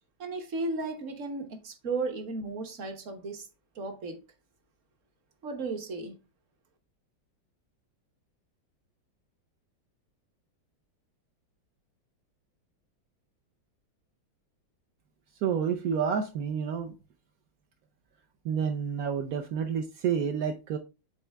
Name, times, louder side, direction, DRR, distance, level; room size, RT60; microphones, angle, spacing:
voice 1, 0.2-3.5 3.7-4.2 5.4-6.2, right 3 dB, 45° right, 1.2 m, -34 dB
voice 2, 15.4-16.9 18.4-20.8, right 7 dB, 65° right, 0.9 m, -29 dB
8.1 x 4.0 x 3.3 m
omnidirectional pair, 2.3 m